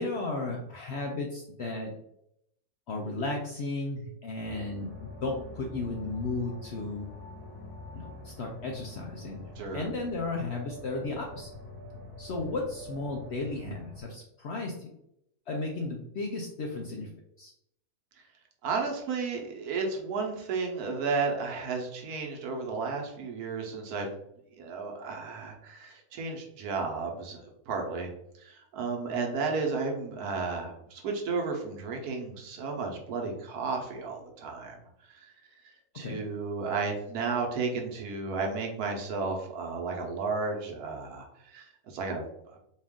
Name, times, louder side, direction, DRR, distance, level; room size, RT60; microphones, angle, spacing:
voice 1, 0.0-1.9 2.9-4.9 5.2-7.1 7.9-11.5 12.2-14.9 15.5-17.1 17.4-17.5 35.9-36.2, left 2 dB, 70° left, 0 dB, 0.6 m, -34 dB
sound 1, 4.4-14.0, left 2 dB, 10° left, 0.6 m, -45 dB
voice 2, 9.6-9.9 18.6-24.1 24.6-28.1 28.4-34.8 35.9-41.3 41.5-42.2, right 4 dB, 75° right, 1 dB, 1.3 m, -33 dB
4.2 x 2.4 x 3.5 m, 0.77 s
omnidirectional pair, 1.6 m